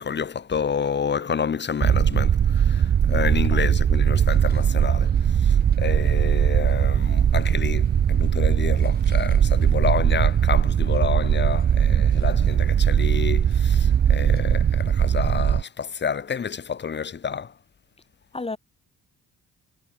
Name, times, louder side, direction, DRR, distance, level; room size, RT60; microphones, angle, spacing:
voice 1, 0.0-17.5, left 6 dB, 35° left, 1.4 m, -29 dB
sound 1, 1.8-15.6, right 9 dB, 35° right, 0.4 m, -20 dB
voice 2, 3.2-3.7 18.3-18.6, left 3 dB, 20° left, 2.3 m, -34 dB
cardioid pair, 90°, 30 cm